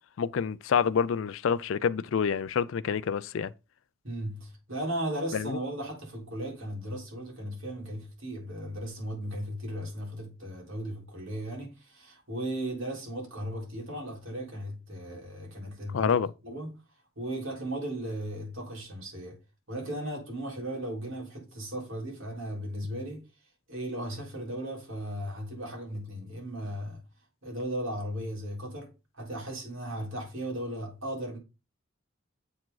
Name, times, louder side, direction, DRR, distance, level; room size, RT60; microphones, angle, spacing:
voice 1, 0.2-3.5 5.3-5.6 15.9-16.3, left 6 dB, 70° left, 0.4 m, -27 dB
voice 2, 4.0-16.2 16.4-16.8 17.2-19.4 19.7-23.2 23.7-27.0 27.4-31.4, right 1 dB, 70° right, 3.6 m, -36 dB
7.3 x 4.9 x 3.9 m
head